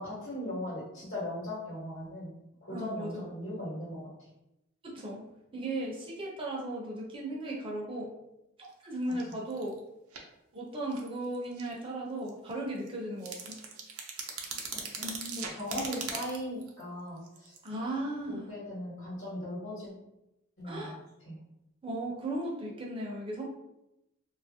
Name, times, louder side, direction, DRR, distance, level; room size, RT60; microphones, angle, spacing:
voice 1, 0.0-2.3 2.6-4.1 9.1-9.3 14.7-15.0 15.5-17.5 18.3-19.9 20.6-20.9 21.3-21.4, left 1 dB, 55° left, -8 dB, 1.1 m, -38 dB
voice 2, 2.7-3.2 4.8-5.2 5.5-8.1 8.6-9.8 10.5-13.7 15.0-15.4 17.6-18.5 20.6-20.9 21.8-23.4, right 1 dB, 25° right, -3 dB, 0.5 m, -36 dB
sound 1, 8.6-8.7 9.0-9.8 10.1-10.2 10.9-11.7 12.3-12.5 12.9-13.0 13.2-16.8 17.2-17.7, right 5 dB, 80° right, 0.5 m, -40 dB
3.0 x 2.4 x 2.6 m, 0.89 s
head